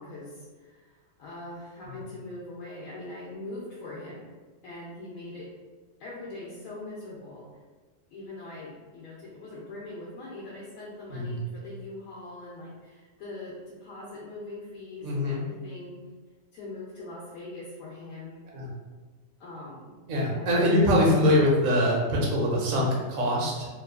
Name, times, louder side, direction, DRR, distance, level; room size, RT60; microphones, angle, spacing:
voice 1, 0.0-4.3 4.6-5.5 6.0-7.5 8.1-16.0 16.5-18.5 19.4-20.0 20.3-20.7, left 2 dB, 85° left, -6 dB, 1.0 m, -42 dB
voice 2, 15.0-15.4 18.5-18.7 20.1-23.7, left 1 dB, 50° right, -3 dB, 0.6 m, -23 dB
2.9 x 2.3 x 2.2 m, 1.3 s
omnidirectional pair, 1.4 m